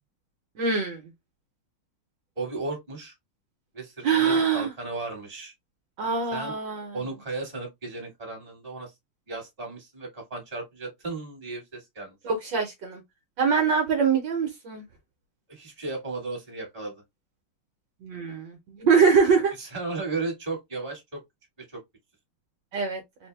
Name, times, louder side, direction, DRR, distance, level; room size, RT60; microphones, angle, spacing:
voice 1, 0.6-1.0 4.0-4.7 6.0-7.0 12.2-13.0 13.4-14.8 18.0-19.5 22.7-23.0, right 5 dB, 65° right, 1.5 m, -23 dB
voice 2, 2.4-3.1 3.7-5.5 6.3-6.6 6.9-8.9 9.3-12.2 15.5-17.0 19.6-21.2 21.7-21.8, right 3 dB, 20° right, 1.8 m, -35 dB
4.0 x 2.7 x 3.3 m
omnidirectional pair, 2.3 m